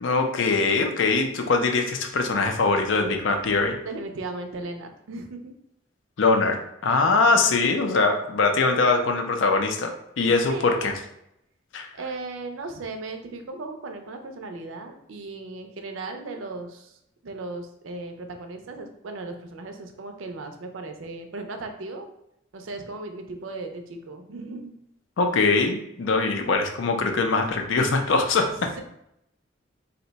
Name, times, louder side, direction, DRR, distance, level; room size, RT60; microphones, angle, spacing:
voice 1, 0.0-3.8 6.2-10.9 11.7-11.9 25.2-28.8, left 3 dB, 70° left, 4 dB, 0.5 m, -22 dB
voice 2, 3.8-5.6 10.2-10.9 11.9-22.1 22.5-24.8 28.8-28.9, right 3 dB, 75° right, 5 dB, 0.5 m, -37 dB
2.7 x 2.1 x 3.9 m, 0.80 s
head